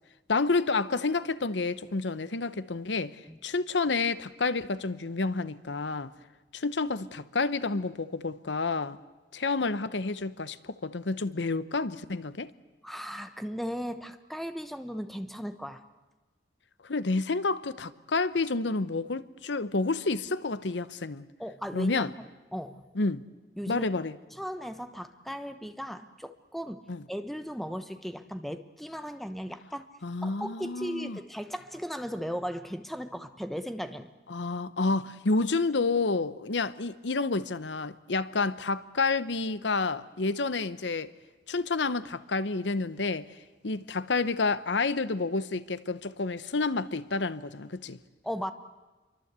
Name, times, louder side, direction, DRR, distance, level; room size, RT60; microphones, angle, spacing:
voice 1, 0.3-3.2 3.4-6.1 6.5-9.0 9.3-12.5 16.8-21.3 21.7-22.1 23.0-23.2 23.7-24.2 26.9-27.0 30.0-31.2 34.3-41.1 41.5-43.2 43.6-48.0, left 3 dB, 80° left, 0.9 m, -29 dB
voice 2, 12.8-15.8 21.4-22.9 23.6-23.9 24.3-29.9 30.2-34.1 48.2-48.5, equal, ahead, 1.0 m, -37 dB
28.0 x 24.0 x 8.2 m
head